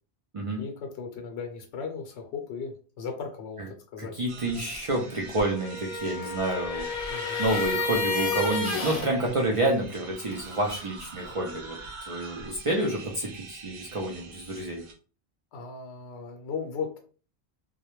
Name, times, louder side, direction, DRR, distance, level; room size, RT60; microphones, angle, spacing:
voice 1, 0.6-4.1 7.1-7.4 15.5-17.0, left 5 dB, 75° left, 3 dB, 0.8 m, -37 dB
voice 2, 4.0-6.9 7.4-11.8 12.1-14.8, right 1 dB, 50° right, -1 dB, 0.4 m, -29 dB
sound 1, 4.3-14.9, right 3 dB, 70° right, 0.8 m, -45 dB
sound 2, 5.5-9.1, left 3 dB, 45° left, 0.6 m, -30 dB
2.3 x 2.0 x 3.0 m, 0.39 s
omnidirectional pair, 1.1 m